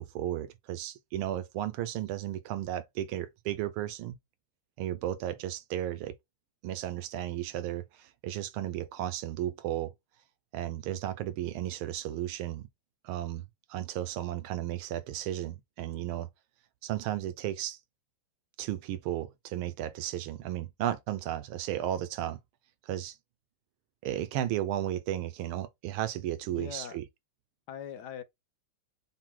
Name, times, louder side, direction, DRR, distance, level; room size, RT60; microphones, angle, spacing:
voice 1, 0.0-4.2 4.8-6.2 6.6-9.9 10.5-12.7 13.0-16.3 16.8-17.8 18.6-22.4 22.8-23.2 24.0-27.0, right 12 dB, 80° right, 1.5 m, -34 dB
voice 2, 26.5-27.0 27.7-28.2, left 9 dB, 70° left, 1.0 m, -41 dB
6.0 x 2.1 x 3.7 m
omnidirectional pair, 2.3 m